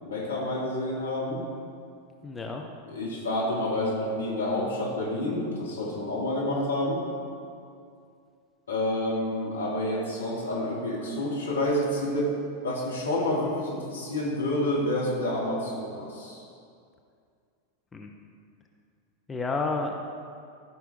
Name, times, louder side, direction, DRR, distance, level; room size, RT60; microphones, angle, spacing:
voice 1, 0.0-1.5 2.9-7.1 8.7-12.3 12.6-16.4, left 1 dB, 75° left, -4 dB, 2.3 m, -29 dB
voice 2, 2.2-2.6 17.9-18.1 19.3-20.1, left 3 dB, 15° left, 2 dB, 0.7 m, -30 dB
14.5 x 6.0 x 3.5 m, 2.3 s
figure-of-eight pair, 85°, 0 cm